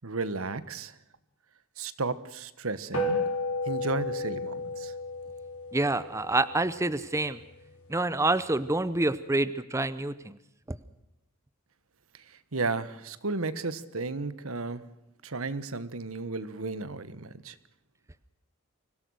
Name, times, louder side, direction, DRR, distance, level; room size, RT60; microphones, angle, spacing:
voice 1, 0.0-0.9 1.8-3.2 3.7-4.9 12.5-14.8 15.2-17.5, right 3 dB, 70° right, 14 dB, 1.3 m, -33 dB
sound 1, 2.9-7.6, left 2 dB, 75° left, 5.1 m, -33 dB
voice 2, 5.7-7.4 7.9-10.4, right 2 dB, 15° right, 14 dB, 0.6 m, -27 dB
25.0 x 17.0 x 6.4 m, 0.91 s
head